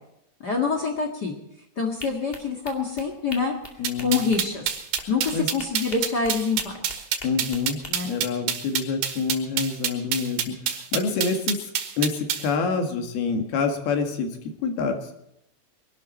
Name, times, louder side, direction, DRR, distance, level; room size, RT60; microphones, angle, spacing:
voice 1, 0.4-1.4 1.8-3.5 4.0-4.6 5.1-6.7 7.9-8.1, left 4 dB, 50° left, 2 dB, 1.2 m, -26 dB
sound 1, 2.0-7.9, left 2 dB, 30° left, 1.1 m, -42 dB
voice 2, 3.8-4.2 5.3-5.5 7.2-11.6 12.0-15.1, left 4 dB, 65° left, 5 dB, 3.6 m, -27 dB
sound 2, 3.8-12.5, right 9 dB, 75° right, 3.6 m, -27 dB
23.0 x 12.0 x 4.3 m, 0.83 s
omnidirectional pair, 4.9 m